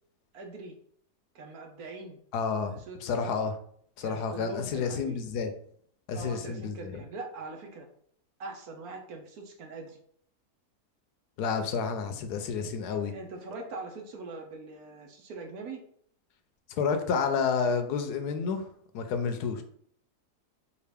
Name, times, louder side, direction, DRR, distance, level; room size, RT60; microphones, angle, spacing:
voice 1, 0.3-0.7 1.3-2.2 2.7-3.1 4.0-5.3 6.1-7.9 8.4-10.0 13.0-15.8, right 3 dB, 70° right, 2 dB, 1.2 m, -42 dB
voice 2, 2.3-3.6 4.0-5.5 6.1-7.0 11.4-13.1 16.7-18.7 18.9-19.6, left 5 dB, 80° left, 7 dB, 1.1 m, -30 dB
4.9 x 2.5 x 3.4 m, 0.62 s
omnidirectional pair, 1.7 m